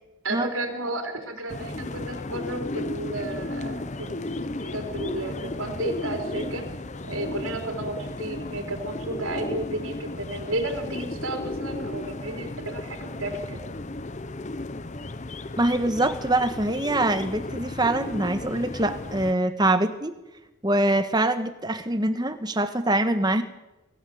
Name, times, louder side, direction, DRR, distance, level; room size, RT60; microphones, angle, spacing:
voice 1, 0.2-4.1 4.5-6.6 7.0-13.6, right 2 dB, 70° right, 3 dB, 4.0 m, -32 dB
sound 1, 1.5-19.3, left 2 dB, 35° left, 0.7 m, -34 dB
voice 2, 15.6-20.1 20.6-23.4, right 1 dB, 20° right, 9 dB, 1.4 m, -24 dB
24.0 x 15.5 x 8.0 m, 0.99 s
head